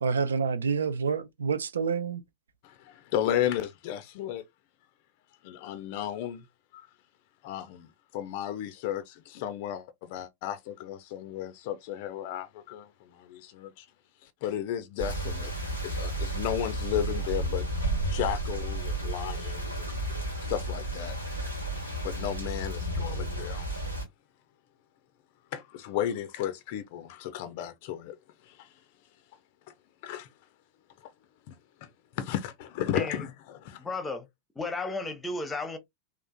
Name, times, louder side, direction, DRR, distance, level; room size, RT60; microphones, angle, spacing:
voice 1, 0.0-2.2, right 5 dB, 70° right, 0.4 m, -28 dB
voice 2, 2.6-4.4 5.4-6.4 6.7-6.9 7.4-13.9 14.2-15.5 15.8-21.2 22.0-23.7 25.5-28.2 28.4-28.7 30.0-30.3 31.0-31.1 31.5-31.6 31.8-31.9 32.2-33.8, left 11 dB, 50° left, 0.4 m, -34 dB
sound 1, 15.0-24.0, right 1 dB, 85° right, 1.5 m, -32 dB
voice 3, 32.9-33.3 33.8-34.3 34.6-35.8, left 3 dB, 10° left, 0.7 m, -33 dB
3.5 x 2.4 x 2.2 m
figure-of-eight pair, 90°, 0 cm